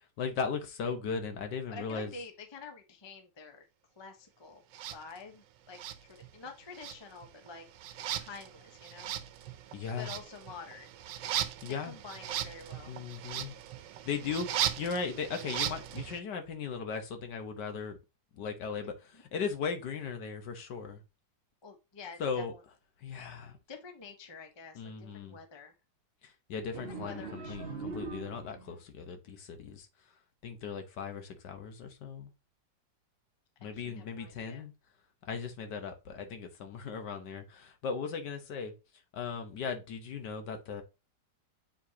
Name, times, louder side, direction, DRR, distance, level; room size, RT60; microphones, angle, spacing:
voice 1, 0.2-2.1 9.7-10.1 11.6-11.9 12.9-13.5 14.0-18.0 18.3-21.0 22.2-22.5 23.0-23.6 24.7-25.4 26.2-29.9 30.4-32.3 33.6-34.7 35.2-38.7 39.1-40.8, left 5 dB, 70° left, 1.6 m, -37 dB
voice 2, 1.7-3.6 4.0-4.6 4.9-9.1 10.0-10.9 11.7-12.9 19.1-19.2 21.6-22.6 23.7-25.7 26.9-27.9 28.7-28.8 33.7-34.6, left 4 dB, 20° left, 0.7 m, -48 dB
sound 1, 4.7-5.0 5.7-6.5 6.7-16.2, right 11 dB, 90° right, 1.4 m, -38 dB
sound 2, 26.7-28.8, right 4 dB, 35° right, 1.3 m, -41 dB
7.2 x 4.7 x 2.8 m
omnidirectional pair, 2.0 m